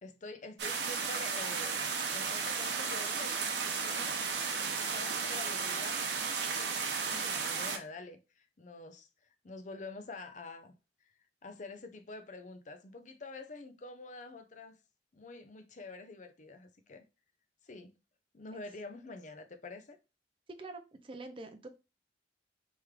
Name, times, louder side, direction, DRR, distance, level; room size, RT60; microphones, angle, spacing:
voice 1, 0.0-4.5 4.8-9.1 9.4-10.7 11.4-14.8 15.1-17.0 17.6-17.9 18.3-20.0, left 3 dB, 45° left, 0.6 m, -47 dB
sound 1, 0.6-7.8, right 5 dB, 80° right, 0.8 m, -34 dB
voice 2, 20.5-21.7, right 2 dB, 30° right, 0.5 m, -45 dB
3.2 x 3.1 x 3.6 m
head